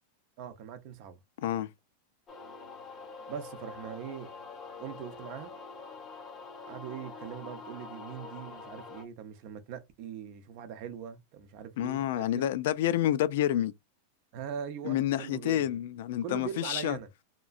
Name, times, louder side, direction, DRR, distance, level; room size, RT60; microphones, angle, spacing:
voice 1, 0.4-1.2 3.3-4.3 4.8-5.5 6.7-12.3 14.3-15.6 16.2-17.1, right 8 dB, 45° right, 0.5 m, -41 dB
sound 1, 2.3-9.0, left 4 dB, 20° left, 0.7 m, -45 dB
voice 2, 11.8-13.7 14.8-17.0, left 12 dB, 65° left, 0.3 m, -28 dB
2.9 x 2.4 x 2.3 m
supercardioid pair, 160°, 0 cm